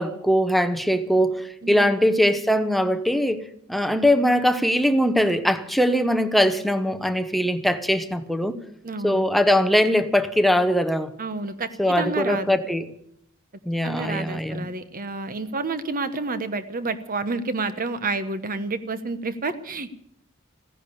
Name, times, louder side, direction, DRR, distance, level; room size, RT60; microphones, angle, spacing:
voice 1, 0.0-8.6 9.0-11.1 11.8-12.9 13.7-14.7, equal, ahead, 0.8 m, -21 dB
voice 2, 1.6-2.0 8.8-9.2 11.2-11.7 12.0-12.6 13.8-19.9, right 3 dB, 40° right, 1.2 m, -29 dB
16.0 x 10.0 x 8.6 m
head